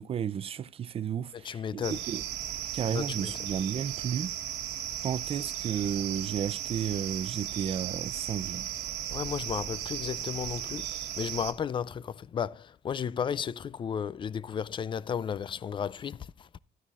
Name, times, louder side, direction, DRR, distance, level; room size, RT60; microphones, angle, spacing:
voice 1, 0.0-2.2 2.7-4.3 5.0-8.7, right 8 dB, 35° right, 0.5 m, -33 dB
voice 2, 1.3-2.0 2.9-3.3 9.1-16.5, left 7 dB, 30° left, 0.3 m, -34 dB
sound 1, 1.8-11.5, right 11 dB, 80° right, 1.3 m, -36 dB
12.5 x 9.8 x 2.4 m
cardioid pair, 110°, 17 cm